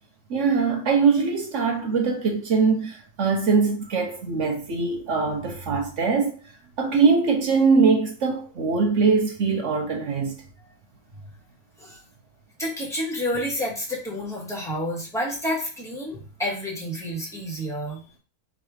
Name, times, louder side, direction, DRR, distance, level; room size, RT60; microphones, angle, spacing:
voice 1, 0.3-6.3 6.8-10.3, right 4 dB, 60° right, 0.9 m, -22 dB
voice 2, 12.6-18.0, equal, ahead, 1.4 m, -29 dB
3.7 x 2.9 x 4.8 m
omnidirectional pair, 1.8 m